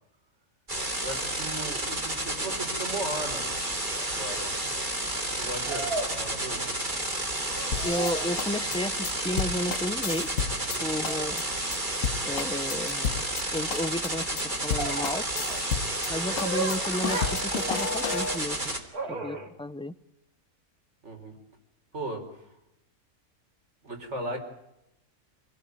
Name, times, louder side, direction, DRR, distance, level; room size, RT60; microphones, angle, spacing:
sound 1, 0.7-18.8, right 1 dB, 35° right, 3.5 m, -31 dB
voice 1, 1.0-3.5 4.0-4.5 5.2-6.8 10.7-11.1 16.3-16.4 19.0-19.4 21.0-21.4 21.9-22.5 23.8-24.4, right 1 dB, 50° right, 4 dB, 4.9 m, -37 dB
sound 2, 3.3-3.4 5.7-7.0 7.3-8.4 11.1-11.3 14.8-18.2 18.9-19.5, right 3 dB, 90° right, 3.0 m, -36 dB
sound 3, 7.7-10.8 11.0-11.4 11.7-11.8 12.0-13.4 13.7-14.1 14.4-14.5 14.7-16.1 16.4-18.4, left 6 dB, 65° left, 1.5 m, -32 dB
voice 2, 7.8-10.3 10.8-11.4 12.2-13.3 13.5-15.3 16.1-18.7 19.1-19.9, left 1 dB, 5° left, 13 dB, 0.4 m, -32 dB
27.0 x 17.5 x 9.5 m, 0.85 s
omnidirectional pair, 1.5 m